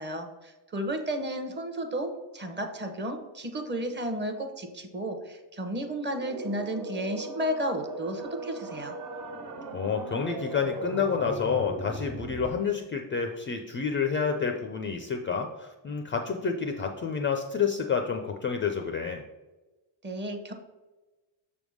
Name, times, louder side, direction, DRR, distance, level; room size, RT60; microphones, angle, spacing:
voice 1, 0.0-9.0 20.0-20.5, right 1 dB, 25° right, 6 dB, 0.8 m, -33 dB
sound 1, 6.0-12.5, right 2 dB, 55° right, 1.4 m, -38 dB
voice 2, 9.7-19.2, left 6 dB, 30° left, 5 dB, 0.3 m, -29 dB
6.7 x 3.5 x 6.2 m, 1.1 s
cardioid pair, 160°, 46 cm